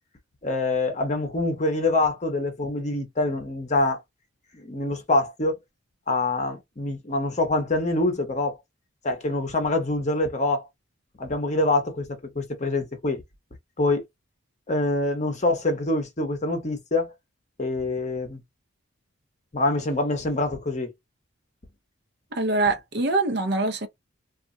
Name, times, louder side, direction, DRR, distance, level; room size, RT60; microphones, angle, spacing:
voice 1, 0.4-4.0 4.5-5.6 6.1-8.6 9.0-10.7 11.2-13.2 13.8-14.0 14.7-17.1 17.6-18.4 19.5-20.9, left 2 dB, 35° left, 0.8 m, -25 dB
voice 2, 22.3-23.9, right 2 dB, 55° right, 0.7 m, -24 dB
2.5 x 2.1 x 3.7 m
head